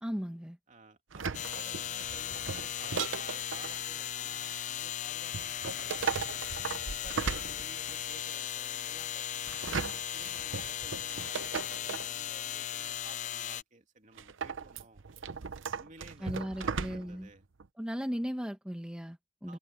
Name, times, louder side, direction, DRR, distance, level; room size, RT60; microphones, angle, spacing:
voice 1, 0.0-0.6 16.2-17.3 17.8-19.6, equal, 5° right, 1.0 m, -36 dB
voice 2, 0.7-6.4 6.9-9.7 10.1-15.0 15.7-17.4 19.5-19.6, right 3 dB, 40° right, 2.9 m, -54 dB
sound 1, 1.1-3.8 5.3-8.1 9.5-12.1 14.2-17.3 17.6-17.7, right 5 dB, 75° right, 0.7 m, -37 dB
sound 2, 1.3-13.6, left 11 dB, 40° left, 0.4 m, -37 dB
Mechanisms, 1.5-7.8, left 9 dB, 75° left, 7.4 m, -60 dB
head